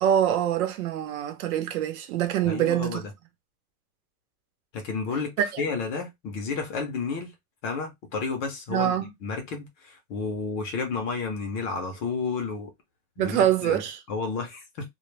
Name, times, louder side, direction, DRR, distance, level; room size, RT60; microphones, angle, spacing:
voice 1, 0.0-3.0 5.4-5.6 8.7-9.1 13.2-14.0, right 11 dB, 70° right, 0.8 m, -25 dB
voice 2, 2.4-3.1 4.7-7.3 7.6-8.9 9.2-12.7 13.2-13.8 14.1-14.9, left 4 dB, 30° left, 0.5 m, -31 dB
2.2 x 2.0 x 3.1 m
supercardioid pair, 155°, 45 cm